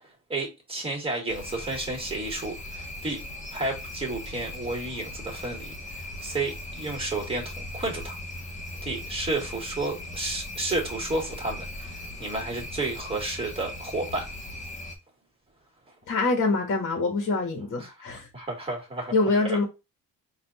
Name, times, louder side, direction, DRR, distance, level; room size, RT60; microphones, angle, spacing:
voice 1, 0.3-3.2 3.5-8.2 8.8-14.3 17.8-19.1 19.5-19.6, right 2 dB, 15° right, 2.0 m, -32 dB
sound 1, 1.3-15.0, left 1 dB, 20° left, 1.1 m, -39 dB
voice 2, 16.1-18.3 19.1-19.6, left 3 dB, 35° left, 1.3 m, -25 dB
4.2 x 2.6 x 4.0 m
cardioid pair, 110°, 36 cm